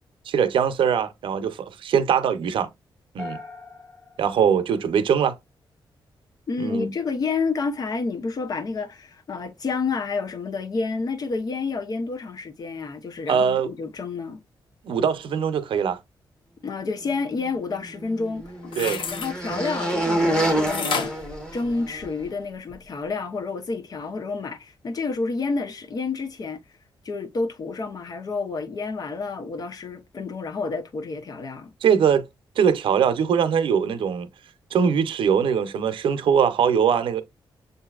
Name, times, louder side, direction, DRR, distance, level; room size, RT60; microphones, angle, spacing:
voice 1, 0.3-2.7 3.1-3.4 4.2-5.3 6.6-6.9 13.3-13.7 14.8-16.0 18.8-19.0 19.5-19.7 31.8-32.3 32.6-34.3 34.7-37.2, right 7 dB, 85° right, 0.7 m, -22 dB
sound 1, 3.2-5.4, left 3 dB, 30° left, 2.3 m, -42 dB
voice 2, 6.5-14.4 16.6-18.4 18.8-26.6 27.0-31.7, left 4 dB, 50° left, 0.8 m, -29 dB
sound 2, 17.5-22.1, right 1 dB, 10° left, 1.4 m, -27 dB
sound 3, 18.4-19.3 20.7-22.2 22.7-22.8, left 5 dB, 80° left, 0.9 m, -30 dB
7.0 x 2.7 x 2.4 m
wide cardioid pair, 145°, 9 cm